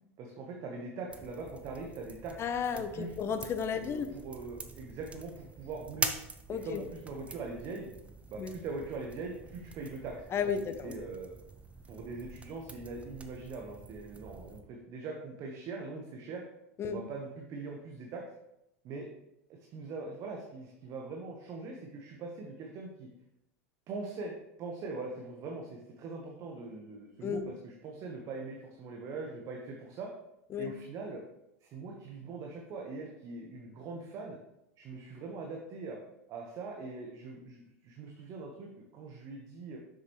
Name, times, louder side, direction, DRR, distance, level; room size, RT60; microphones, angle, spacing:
voice 1, 0.2-2.5 2.7-3.1 3.8-6.1 6.5-7.9 8.3-10.5 10.8-11.4 11.9-16.4 16.8-18.2 18.8-19.1 19.7-23.1 23.9-30.1 30.6-31.2 31.6-34.4 34.8-36.0 36.3-39.8, right 3 dB, 45° right, 0 dB, 1.1 m, -42 dB
sound 1, 1.1-14.6, right 3 dB, 15° right, 0.7 m, -44 dB
voice 2, 2.4-4.1 6.5-6.8 8.4-8.5 10.3-10.9 16.8-17.0 27.2-27.4 30.5-30.7, left 7 dB, 35° left, 9 dB, 0.8 m, -33 dB
7.2 x 6.5 x 3.1 m, 0.87 s
hypercardioid pair, 90°, 8 cm